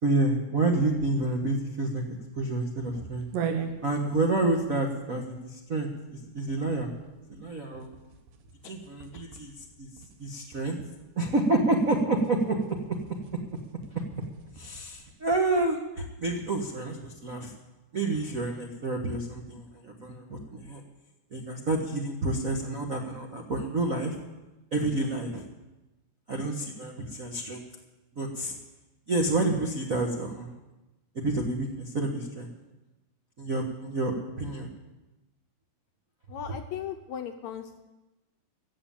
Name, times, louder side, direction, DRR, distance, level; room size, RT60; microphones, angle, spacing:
voice 1, 0.0-3.3 3.8-6.9 7.3-7.9 8.6-9.9 10.2-10.8 11.2-12.8 14.6-17.5 17.9-20.8 21.3-24.1 24.7-25.5 26.3-27.6 28.2-28.5 29.1-30.5 31.1-32.5 33.4-34.7, right 2 dB, 70° right, 1 dB, 0.7 m, -29 dB
sound 1, 0.7-15.6, right 6 dB, 85° right, 2.9 m, -43 dB
voice 2, 36.3-37.8, left 9 dB, 75° left, 6 dB, 1.8 m, -37 dB
15.0 x 7.9 x 8.8 m, 1.0 s
omnidirectional pair, 3.8 m